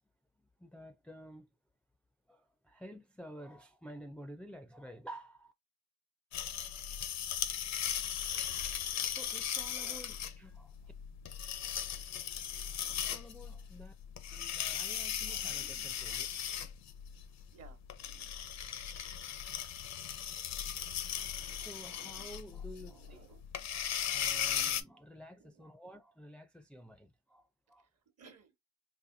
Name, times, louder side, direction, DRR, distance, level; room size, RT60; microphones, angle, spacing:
voice 1, 0.6-1.5 2.3-5.5 8.8-10.9 12.9-13.9 14.3-16.3 21.6-23.2 24.0-27.9, equal, 5° left, 0.4 m, -51 dB
sound 1, 6.3-24.8, left 9 dB, 65° left, 0.6 m, -38 dB
voice 2, 17.5-18.3 22.7-23.5 25.4-25.6 28.2-28.5, right 6 dB, 55° right, 1.0 m, -58 dB
4.1 x 2.5 x 2.6 m
cardioid pair, 90°, 30 cm